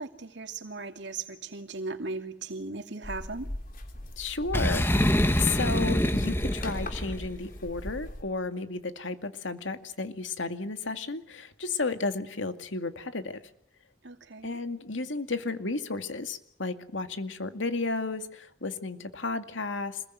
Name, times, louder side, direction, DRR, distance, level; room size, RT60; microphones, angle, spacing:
voice 1, 0.0-3.5 14.0-14.6, right 3 dB, 70° right, 6 dB, 2.4 m, -37 dB
sound 1, 3.0-8.2, left 1 dB, 45° left, 3.5 m, -38 dB
voice 2, 4.2-13.4 14.4-20.0, left 3 dB, 90° left, 8 dB, 2.3 m, -33 dB
Boom, 4.5-7.3, equal, 10° left, 1.6 m, -26 dB
27.0 x 21.5 x 9.4 m, 0.71 s
head